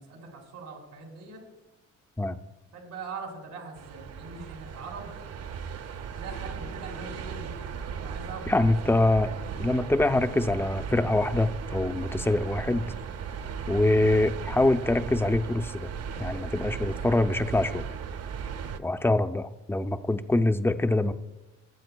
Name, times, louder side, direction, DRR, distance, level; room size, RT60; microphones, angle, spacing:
voice 1, 0.0-1.4 2.7-5.1 5.9-9.0, right 4 dB, 90° right, 0 dB, 3.0 m, -42 dB
sound 1, 3.8-18.8, right 7 dB, 55° right, 0.7 m, -37 dB
voice 2, 8.5-9.3 9.6-12.8 13.7-15.9 16.2-17.9 18.8-21.1, left 2 dB, 10° left, 10 dB, 0.5 m, -24 dB
19.0 x 7.8 x 2.3 m, 1.0 s
cardioid pair, 90°, 30 cm